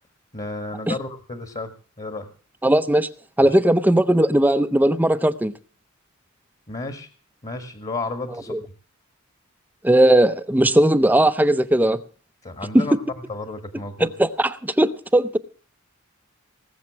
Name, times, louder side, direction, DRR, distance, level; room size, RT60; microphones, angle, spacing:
voice 1, 0.3-1.7 2.0-2.3 3.4-3.6 6.7-7.1 7.4-8.5 12.4-13.0 13.3-14.1, left 3 dB, 30° left, 1.5 m, -32 dB
voice 2, 2.6-3.1 3.4-5.5 8.5-8.6 9.8-12.0 12.7-12.9 14.0-15.4, right 1 dB, 10° right, 0.6 m, -18 dB
19.5 x 7.3 x 7.2 m
head